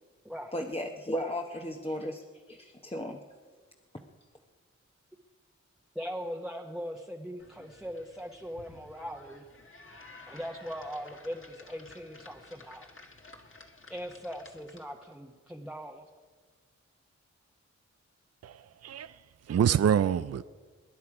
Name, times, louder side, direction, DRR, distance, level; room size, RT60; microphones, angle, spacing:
voice 1, 0.5-3.2, equal, 20° left, 1.0 m, -35 dB
voice 2, 5.9-9.4 10.3-12.9 13.9-16.0, equal, ahead, 1.1 m, -40 dB
sound 1, 7.4-15.1, left 2 dB, 45° left, 1.6 m, -53 dB
voice 3, 18.4-19.2 19.5-20.4, right 8 dB, 60° right, 0.4 m, -26 dB
23.5 x 10.5 x 4.9 m
wide cardioid pair, 60°, 29 cm